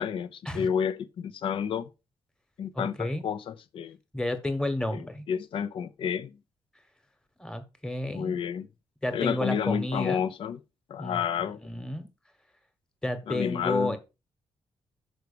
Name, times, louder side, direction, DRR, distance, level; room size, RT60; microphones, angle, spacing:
voice 1, 0.0-1.9 2.6-4.0 4.9-6.3 8.1-8.7 9.1-10.6 10.9-11.6 13.3-14.0, left 7 dB, 65° left, 0.7 m, -30 dB
voice 2, 2.7-3.2 4.1-5.2 7.4-8.4 9.0-10.2 11.0-12.1 13.0-14.0, left 1 dB, 5° left, 1.3 m, -31 dB
6.3 x 4.7 x 6.7 m
wide cardioid pair, 145°, 10 cm